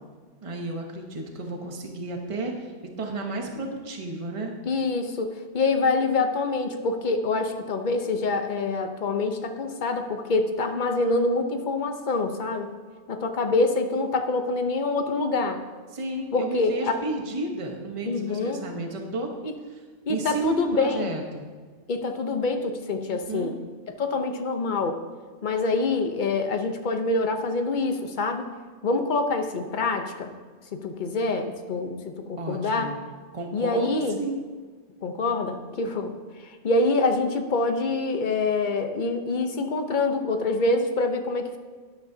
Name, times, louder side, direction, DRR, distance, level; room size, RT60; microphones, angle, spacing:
voice 1, 0.4-4.5 15.9-19.3 20.1-21.5 23.1-23.6 32.4-33.0 33.3-34.4, right 2 dB, 30° right, 2 dB, 1.1 m, -32 dB
voice 2, 4.7-12.7 13.1-15.6 16.3-17.0 18.1-18.6 19.4-19.6 20.1-21.1 21.9-23.5 24.0-25.0 25.4-28.5 28.8-30.3 30.7-32.9 33.5-34.2 35.0-41.6, left 3 dB, 45° left, 6 dB, 0.9 m, -26 dB
12.5 x 11.5 x 2.8 m, 1.5 s
omnidirectional pair, 1.2 m